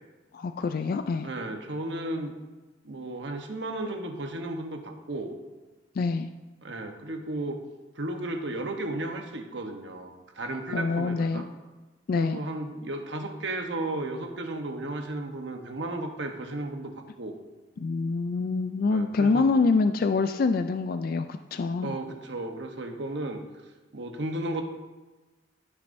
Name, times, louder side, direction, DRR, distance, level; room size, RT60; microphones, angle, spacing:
voice 1, 0.3-1.3 6.0-6.3 10.7-11.4 12.1-12.4 17.8-22.0, left 4 dB, 50° left, 8 dB, 0.3 m, -26 dB
voice 2, 1.2-2.3 2.8-5.3 6.6-7.6 8.0-11.5 12.2-16.9 17.2-17.4 18.9-19.5 21.8-23.4 23.9-24.6, right 2 dB, 75° right, 4 dB, 1.0 m, -34 dB
14.5 x 6.3 x 2.7 m, 1.2 s
head